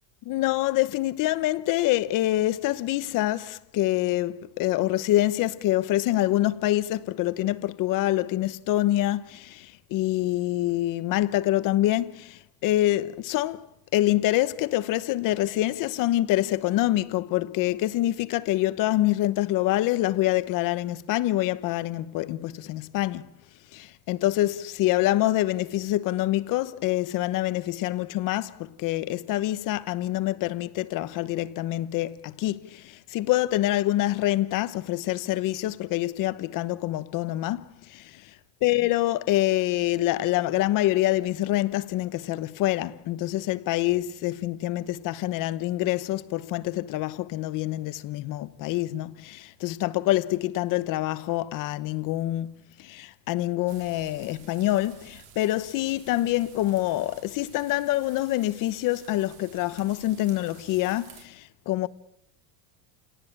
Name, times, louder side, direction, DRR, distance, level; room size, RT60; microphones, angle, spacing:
voice 1, 0.3-13.6 13.9-23.3 23.7-38.1 38.6-61.9, left 15 dB, 40° left, 1.0 m, -26 dB
sound 1, 53.7-61.2, right 8 dB, 75° right, 5.8 m, -52 dB
29.0 x 18.5 x 8.9 m
cardioid pair, 160°, 49 cm